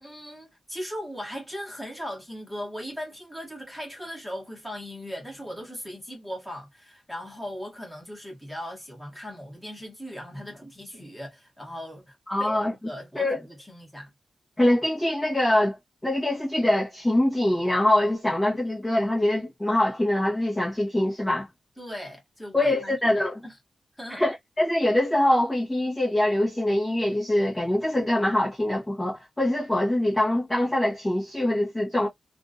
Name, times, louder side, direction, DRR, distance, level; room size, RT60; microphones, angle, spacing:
voice 1, 0.0-14.1 21.8-23.0 23.4-23.5 24.0-24.2, equal, ahead, 1.7 m, -38 dB
voice 2, 12.3-12.7 13.1-13.4 14.6-15.8 16.0-21.5 22.5-23.4 24.1-32.1, left 1 dB, 15° left, 1.2 m, -24 dB
3.5 x 2.5 x 2.5 m
wide cardioid pair, 120°, 0 cm